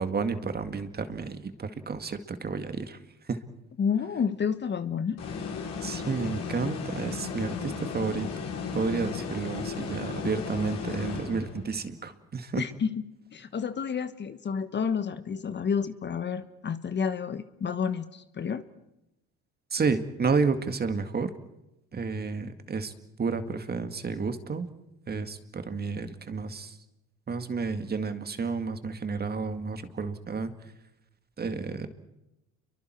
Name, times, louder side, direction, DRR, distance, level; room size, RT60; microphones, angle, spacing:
voice 1, 0.0-3.0 3.2-3.4 5.8-8.3 8.7-12.6 19.7-21.3 21.9-22.9 23.2-24.7 25.1-26.8 27.3-30.5 31.4-31.9, right 4 dB, 30° right, 9 dB, 2.1 m, -31 dB
voice 2, 3.8-5.2 9.1-9.3 12.6-13.0 13.3-18.6, left 6 dB, 35° left, 11 dB, 1.3 m, -30 dB
sound 1, 5.2-11.8, left 5 dB, 55° left, 5.6 m, -35 dB
29.5 x 23.5 x 4.6 m, 0.93 s
supercardioid pair, 75°, 31 cm